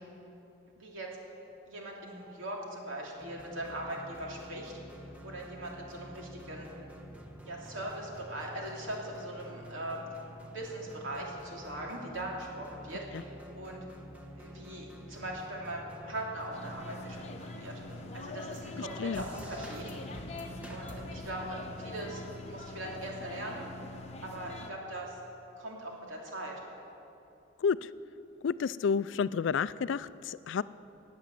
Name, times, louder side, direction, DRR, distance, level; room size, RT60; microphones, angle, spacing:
voice 1, 0.8-1.2 1.7-4.8 5.0-6.7 7.5-10.2 10.5-13.8 14.3-17.8 18.1-19.9 20.7-22.2 22.5-23.7 24.2-25.2 25.6-26.6, right 1 dB, 90° right, -1 dB, 2.8 m, -40 dB
sound 1, 3.2-21.2, equal, 5° right, 1.1 m, -49 dB
sound 2, 16.5-24.7, left 2 dB, 35° left, 1.0 m, -44 dB
voice 2, 27.6-27.9 28.4-30.6, left 6 dB, 70° left, 17 dB, 0.4 m, -30 dB
18.5 x 8.3 x 7.6 m, 2.9 s
head